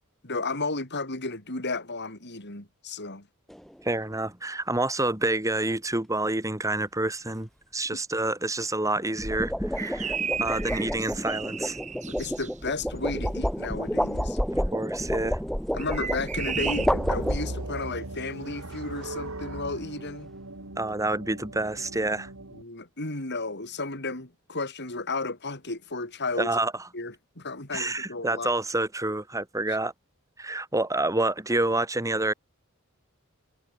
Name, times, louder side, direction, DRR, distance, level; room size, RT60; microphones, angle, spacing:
voice 1, 0.2-3.3 12.1-14.7 15.7-20.3 22.5-26.6 26.9-28.5, left 3 dB, 50° left, 6.8 m, -33 dB
sound 1, 3.5-3.8 9.0-17.9, equal, ahead, 1.4 m, -30 dB
voice 2, 3.8-11.8 14.5-15.4 20.8-22.3 26.4-26.9 27.7-29.9 30.4-32.3, right 2 dB, 15° right, 2.2 m, -28 dB
sound 2, 9.8-12.5 15.8-16.9, right 7 dB, 35° right, 1.8 m, -34 dB
sound 3, 16.4-22.6, right 1 dB, 75° right, 3.2 m, -39 dB
head